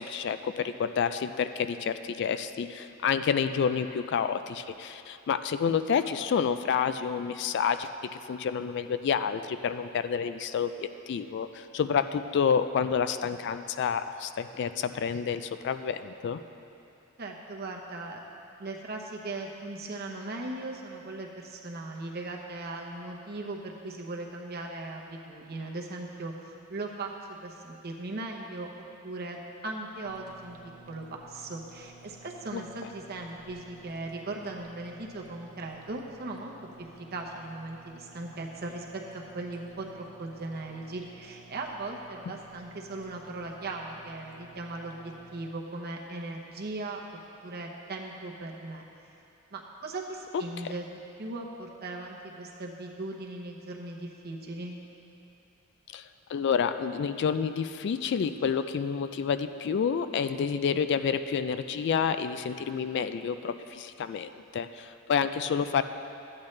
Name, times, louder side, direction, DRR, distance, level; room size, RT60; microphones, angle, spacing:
voice 1, 0.0-7.9 8.3-16.4 32.5-32.6 55.9-65.8, left 6 dB, 55° left, 11 dB, 0.3 m, -29 dB
voice 2, 17.2-18.2 18.6-28.7 29.0-30.6 30.9-47.0 47.4-48.8 49.5-54.8, right 2 dB, 50° right, 0 dB, 0.9 m, -38 dB
sound 1, 30.0-45.5, right 2 dB, 85° right, 0.7 m, -54 dB
13.0 x 8.7 x 3.2 m, 2.8 s
head